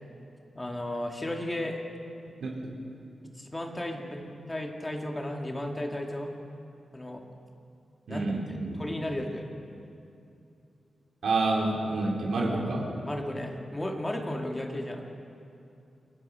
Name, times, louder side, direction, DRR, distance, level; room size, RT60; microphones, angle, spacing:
voice 1, 0.5-1.8 3.4-6.3 6.9-7.2 8.1-9.5 13.1-15.1, left 1 dB, 15° left, 2 dB, 2.1 m, -34 dB
voice 2, 8.1-8.8 11.2-12.9, right 2 dB, 80° right, -1 dB, 4.2 m, -28 dB
27.5 x 23.5 x 5.6 m, 2.7 s
wide cardioid pair, 175°, 0 cm